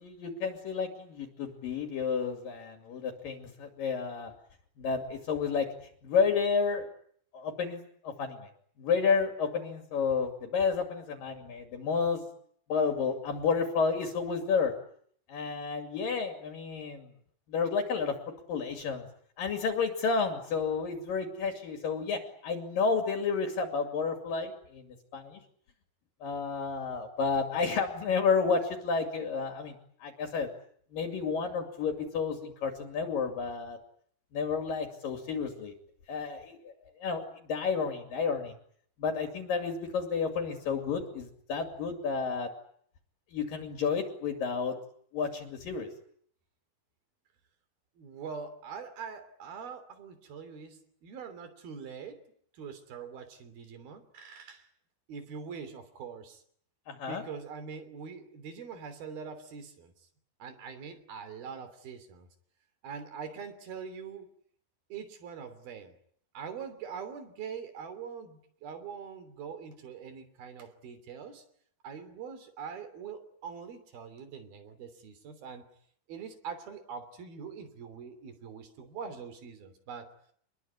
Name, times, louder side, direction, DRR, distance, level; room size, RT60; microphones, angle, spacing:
voice 1, 0.0-4.3 4.8-5.7 6.0-6.9 7.3-8.5 8.8-12.2 12.7-14.7 15.3-17.1 17.5-18.2 18.5-19.1 19.4-25.4 26.2-29.8 30.0-30.5 30.9-33.8 34.3-35.7 36.1-38.5 39.0-42.5 43.3-44.8 45.1-45.9 56.9-57.2, left 5 dB, 65° left, 4 dB, 4.3 m, -31 dB
voice 2, 48.0-52.3 52.5-54.7 55.1-56.4 57.1-59.9 60.4-62.3 62.8-64.3 64.9-66.0 66.3-71.4 71.8-75.7 76.1-80.1, right 6 dB, 75° right, 11 dB, 5.0 m, -43 dB
26.5 x 21.5 x 9.7 m, 0.64 s
omnidirectional pair, 4.3 m